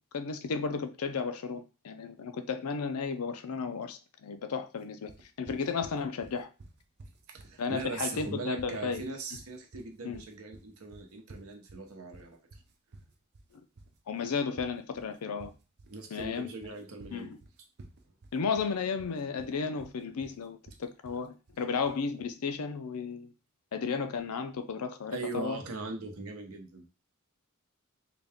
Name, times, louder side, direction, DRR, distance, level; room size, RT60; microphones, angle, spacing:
voice 1, 0.1-5.1 5.4-6.5 7.6-9.0 10.0-10.2 14.1-15.5 16.1-16.5 17.1-17.4 18.3-23.3 23.7-25.6, left 5 dB, 85° left, 0.5 m, -34 dB
sound 1, 5.1-22.1, right 2 dB, 50° right, 0.6 m, -52 dB
voice 2, 7.3-12.4 15.9-17.3 25.1-26.9, right 3 dB, 75° right, 0.9 m, -40 dB
3.9 x 2.2 x 3.4 m
head